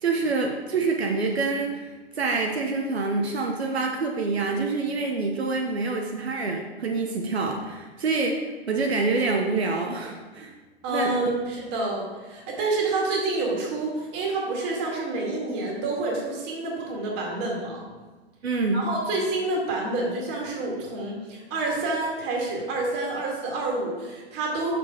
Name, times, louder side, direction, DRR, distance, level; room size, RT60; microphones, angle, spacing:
voice 1, 0.0-1.9 2.1-10.5 10.9-11.1 18.4-18.8, right 3 dB, 75° right, 1 dB, 1.0 m, -26 dB
voice 2, 10.8-17.8 18.7-24.7, right 2 dB, 30° right, -2 dB, 2.1 m, -28 dB
6.5 x 5.1 x 4.9 m, 1.3 s
figure-of-eight pair, 110°, 32 cm